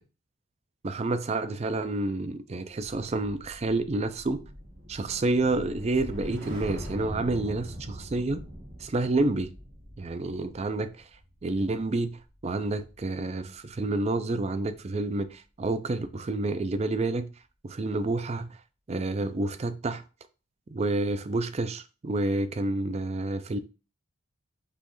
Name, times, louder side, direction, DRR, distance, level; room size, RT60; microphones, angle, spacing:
voice 1, 0.8-4.4 4.9-8.4 8.8-9.5 10.0-10.9 11.4-17.3 17.6-18.5 18.9-20.0 20.7-23.6, right 2 dB, 30° right, 0.4 m, -29 dB
sound 1, 2.9-13.2 13.5-13.8, equal, 70° right, 1.5 m, -42 dB
5.4 x 3.1 x 3.0 m
head